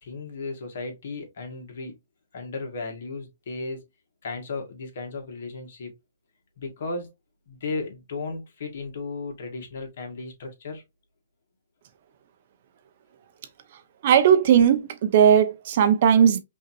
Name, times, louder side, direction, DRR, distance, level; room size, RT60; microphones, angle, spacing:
voice 1, 0.0-2.0 2.3-3.9 4.2-5.9 6.6-7.1 7.5-10.8, left 3 dB, 60° left, 1.8 m, -35 dB
voice 2, 14.0-16.4, right 8 dB, 55° right, 0.9 m, -17 dB
5.4 x 2.9 x 2.6 m
hypercardioid pair, 135°, 0 cm